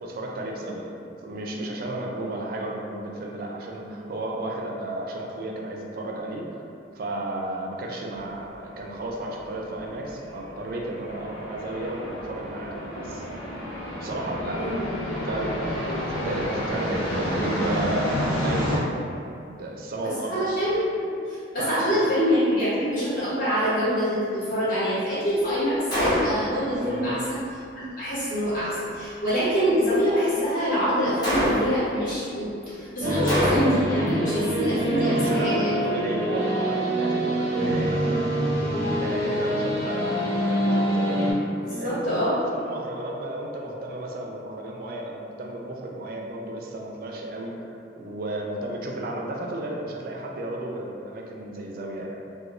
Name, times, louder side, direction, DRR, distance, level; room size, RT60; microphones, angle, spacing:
voice 1, 0.0-6.6 7.0-13.4 14.0-14.6 15.3-15.6 16.2-18.9 19.5-20.4 21.6-22.0 26.8-27.2 34.9-38.5 38.9-41.2 41.7-47.5 48.0-52.2, right 1 dB, 50° right, -1 dB, 0.3 m, -33 dB
sound 1, 8.2-18.8, equal, 85° left, 0.6 m, -31 dB
voice 2, 14.5-14.9 20.0-27.4 27.8-35.7 38.6-38.7 41.6-42.4, equal, 45° left, -12 dB, 1.1 m, -25 dB
Gunshot gunfire, 25.9-26.6 31.2-31.9 33.3-34.0, equal, 20° left, 0.5 m, -24 dB
sound 2, 33.0-41.3, equal, 10° right, 0.7 m, -25 dB
2.4 x 2.2 x 2.9 m, 2.5 s
head